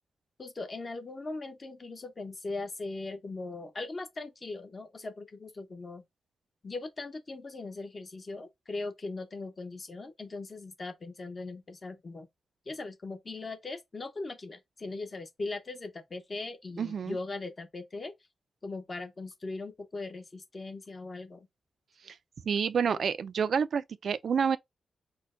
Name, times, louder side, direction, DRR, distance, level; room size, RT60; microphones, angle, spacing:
voice 1, 0.4-6.0 6.6-12.3 12.7-18.1 18.6-21.5 22.9-23.0, left 3 dB, 30° left, 0.8 m, -39 dB
voice 2, 16.8-17.2 22.0-22.2 22.5-24.6, right 6 dB, 60° right, 0.3 m, -28 dB
4.3 x 2.1 x 3.7 m
wide cardioid pair, 145°, 0 cm